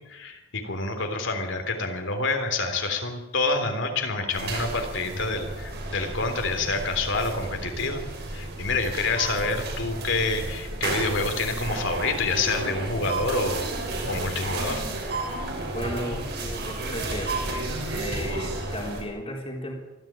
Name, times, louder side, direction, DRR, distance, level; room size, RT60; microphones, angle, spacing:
voice 1, 0.0-8.0 8.3-13.8 14.1-14.9, left 3 dB, 60° left, 5 dB, 3.6 m, -27 dB
sound 1, 4.3-19.0, right 2 dB, 50° right, 6.6 m, -32 dB
voice 2, 15.7-17.4 17.9-19.7, left 1 dB, 25° left, 0 dB, 3.9 m, -35 dB
24.5 x 15.5 x 9.0 m, 1.1 s
head